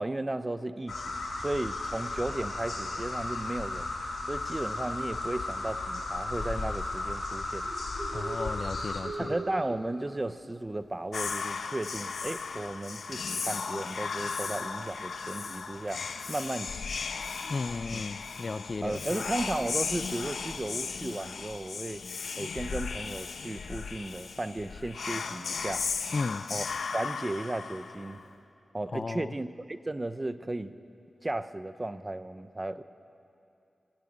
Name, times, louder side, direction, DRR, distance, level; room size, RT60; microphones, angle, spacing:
voice 1, 0.0-3.9 4.3-7.7 9.2-17.0 17.9-18.0 18.8-22.0 22.4-25.9 26.5-26.7 26.9-28.2 28.7-30.8 31.2-32.8, right 2 dB, 20° right, 12 dB, 0.6 m, -35 dB
sound 1, 0.9-9.0, left 2 dB, 65° left, 3.9 m, -35 dB
Bird, 7.5-19.6, right 3 dB, 55° right, 2.1 m, -46 dB
voice 2, 8.1-9.3 17.5-19.2 26.1-26.4 28.9-29.3, left 3 dB, 40° left, 14 dB, 0.4 m, -34 dB
Whispering, 11.1-28.3, left 5 dB, 85° left, 0.8 m, -36 dB
19.5 x 16.0 x 9.9 m, 2.7 s
wide cardioid pair, 135°, 0 cm